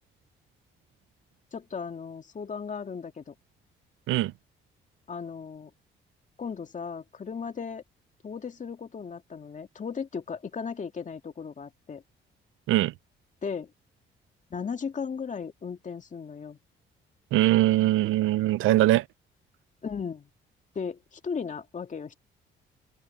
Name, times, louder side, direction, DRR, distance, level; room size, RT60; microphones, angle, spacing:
voice 1, 1.5-3.3 5.1-5.7 6.4-7.8 8.2-12.0 13.4-13.7 14.5-16.6 19.8-20.3 20.7-22.2, left 6 dB, 40° left, 2.3 m, -36 dB
voice 2, 17.3-19.0, right 15 dB, 90° right, 0.7 m, -22 dB
open air
cardioid pair, 90°, 20 cm